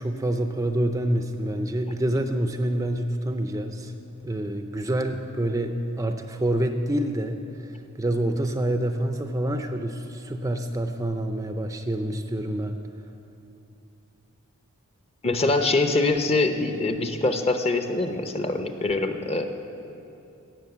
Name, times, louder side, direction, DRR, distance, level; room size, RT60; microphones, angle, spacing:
voice 1, 0.0-3.9 4.2-12.7, right 1 dB, 15° right, 6 dB, 0.5 m, -27 dB
voice 2, 15.2-19.4, left 2 dB, 30° left, 7 dB, 0.8 m, -24 dB
17.0 x 6.4 x 7.9 m, 2.8 s
head